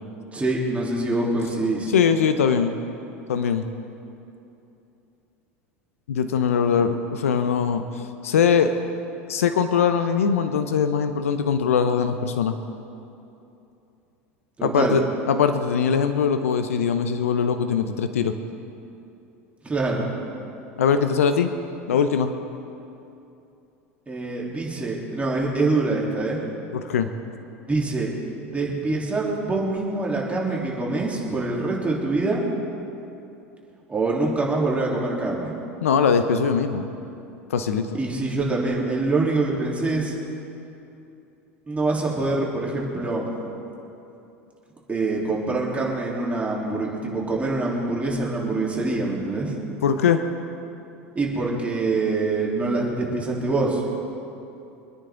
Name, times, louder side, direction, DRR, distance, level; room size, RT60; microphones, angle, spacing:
voice 1, 0.3-1.9 14.6-15.0 19.6-20.1 24.1-26.4 27.7-28.1 28.4-32.4 33.9-35.5 37.9-40.2 41.7-43.2 44.9-49.6 51.1-53.9, right 2 dB, 20° right, -4 dB, 3.6 m, -25 dB
voice 2, 1.9-2.8 3.3-3.7 6.1-8.7 9.3-12.6 14.6-18.3 20.8-21.5 21.9-22.3 26.7-27.1 35.8-36.9 37.5-37.9 49.8-50.2, left 6 dB, 85° left, 8 dB, 0.8 m, -21 dB
25.5 x 9.8 x 3.9 m, 2.8 s
hypercardioid pair, 85°, 7 cm